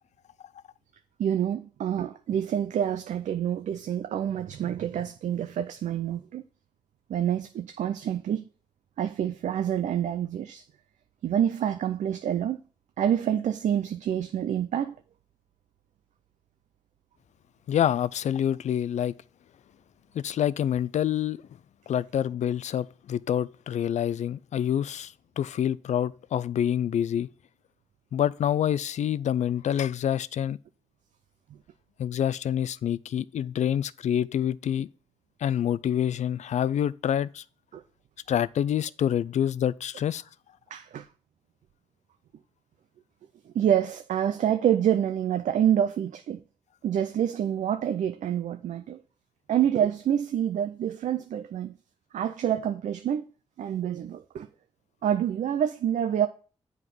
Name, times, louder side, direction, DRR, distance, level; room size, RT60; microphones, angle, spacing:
voice 1, 1.2-6.4 7.1-8.5 9.0-10.7 11.2-12.6 13.0-15.0 37.7-37.8 40.7-41.1 43.4-46.4 46.8-49.0 49.5-51.8 52.1-53.3 53.6-54.5 55.0-56.3, right 9 dB, 75° right, 0.5 m, -27 dB
voice 2, 17.7-19.1 20.1-21.4 21.9-27.3 28.1-30.6 32.0-34.9 35.4-37.4 38.3-40.2, left 10 dB, 70° left, 0.4 m, -27 dB
7.9 x 4.7 x 5.4 m
cardioid pair, 55°, 13 cm